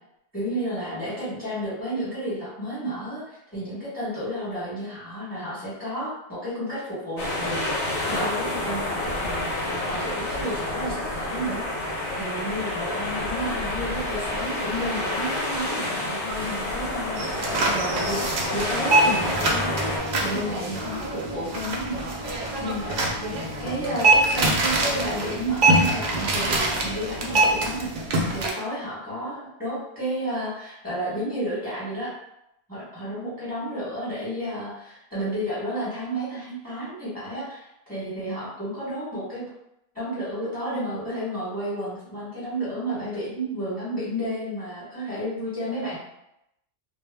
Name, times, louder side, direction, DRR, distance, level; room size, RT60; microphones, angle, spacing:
voice 1, 0.3-18.2 18.5-23.3 23.6-32.1 32.7-39.4 39.9-46.0, equal, 10° left, -10 dB, 1.0 m, -32 dB
sound 1, 7.2-20.0, left 1 dB, 90° left, 1.1 m, -29 dB
sound 2, 17.2-28.5, right 2 dB, 60° right, 0.6 m, -24 dB
sound 3, 18.2-29.5, left 3 dB, 70° left, 0.8 m, -42 dB
2.2 x 2.1 x 3.4 m, 0.82 s
omnidirectional pair, 1.2 m